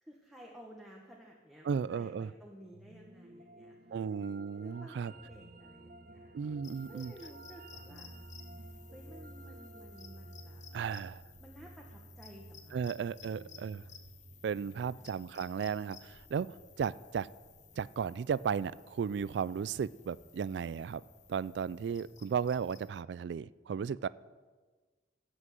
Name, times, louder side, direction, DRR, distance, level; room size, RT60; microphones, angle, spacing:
voice 1, 0.0-4.0 4.6-6.4 6.9-8.1 8.9-10.6 11.4-12.8 13.2-13.9 14.7-15.1, equal, ahead, -2 dB, 1.3 m, -54 dB
voice 2, 1.6-2.3 3.9-5.1 6.3-7.1 10.7-11.2 12.7-13.8 14.4-17.3 17.8-21.0 21.3-24.1, right 6 dB, 70° right, 19 dB, 0.3 m, -35 dB
sound 1, 2.7-11.9, right 1 dB, 55° right, 0.9 m, -55 dB
sound 2, 5.1-23.0, right 2 dB, 35° right, 0.7 m, -56 dB
sound 3, 6.6-22.9, left 7 dB, 45° left, 0.9 m, -57 dB
16.0 x 6.2 x 7.7 m, 1.4 s
head